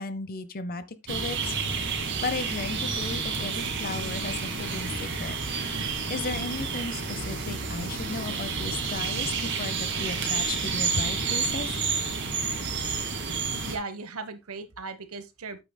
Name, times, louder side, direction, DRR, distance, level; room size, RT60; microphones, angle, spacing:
voice 1, 0.0-1.6 1.9-5.3 6.1-11.7, left 3 dB, 40° left, 0.7 m, -35 dB
sound 1, 1.1-13.8, right 4 dB, 55° right, 2.1 m, -30 dB
voice 2, 13.6-15.6, right 3 dB, 70° right, 1.1 m, -37 dB
8.9 x 8.3 x 2.2 m
head